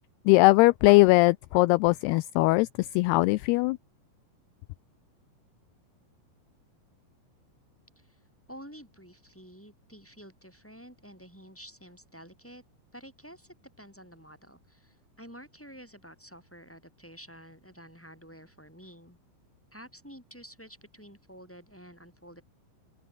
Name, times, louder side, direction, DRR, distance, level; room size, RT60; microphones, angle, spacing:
voice 1, 0.3-3.8, left 22 dB, 85° left, 2.3 m, -20 dB
voice 2, 8.5-12.6 12.9-19.2 19.7-22.4, equal, 5° left, 5.3 m, -50 dB
open air
omnidirectional pair, 5.1 m